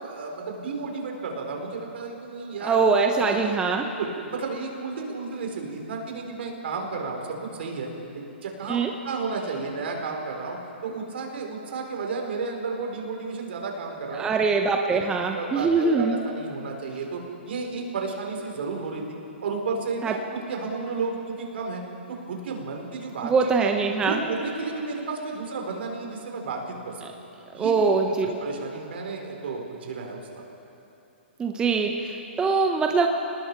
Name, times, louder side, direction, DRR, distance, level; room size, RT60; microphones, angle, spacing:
voice 1, 0.0-2.8 3.1-7.9 8.1-14.3 14.9-20.2 20.5-21.8 22.1-23.3 23.6-23.7 24.0-27.1 27.5-30.2, right 4 dB, 65° right, 2 dB, 4.2 m, -32 dB
voice 2, 2.6-3.9 8.7-8.9 14.2-16.2 20.0-20.1 23.2-24.2 27.6-28.4 31.4-33.1, right 4 dB, 10° right, 3 dB, 0.9 m, -23 dB
29.0 x 19.5 x 4.7 m, 2.8 s
hypercardioid pair, 145°, 6 cm